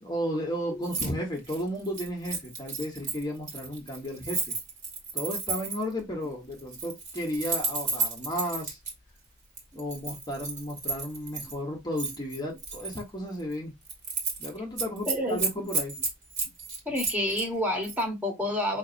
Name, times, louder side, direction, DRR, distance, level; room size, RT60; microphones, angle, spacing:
voice 1, 0.0-4.5 5.1-8.8 9.7-13.7 14.4-15.9, equal, 20° left, 1.2 m, -33 dB
Keys jangling, 0.8-1.1 1.4-5.9 6.6-8.9 9.6-11.5 12.0-13.0 13.4-13.5 13.8-14.5 14.8-17.5 17.8-18.0, right 4 dB, 35° right, 1.9 m, -32 dB
voice 2, 15.1-15.4 16.8-18.8, left 1 dB, 10° right, 1.4 m, -29 dB
5.6 x 2.9 x 2.5 m
head